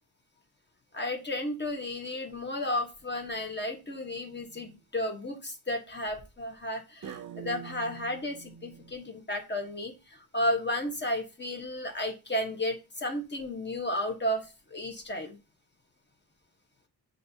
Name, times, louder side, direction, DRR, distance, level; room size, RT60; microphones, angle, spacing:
voice 1, 0.9-15.4, left 1 dB, 30° left, 3 dB, 1.0 m, -33 dB
sound 1, 3.1-3.6 4.2-4.7 7.0-8.9, right 8 dB, 55° right, 0.5 m, -45 dB
7.4 x 2.6 x 2.7 m, 0.28 s
wide cardioid pair, 115°, 38 cm